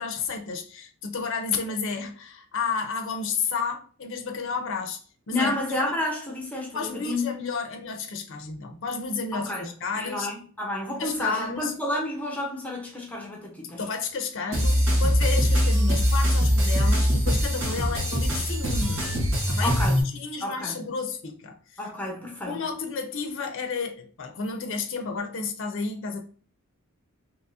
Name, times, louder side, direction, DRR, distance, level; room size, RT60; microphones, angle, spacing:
voice 1, 0.0-5.0 5.3-5.6 6.7-10.3 11.0-11.7 13.8-19.2 19.5-19.7 20.0-21.6 22.5-26.2, left 5 dB, 60° left, 0.6 m, -31 dB
voice 2, 5.3-7.5 9.3-9.7 9.9-13.8 17.9-18.0 19.6-20.0 20.4-20.8 21.8-22.6, left 1 dB, 5° left, 0.8 m, -30 dB
sound 1, 14.5-20.0, equal, 60° right, 1.3 m, -22 dB
3.5 x 3.0 x 2.7 m
head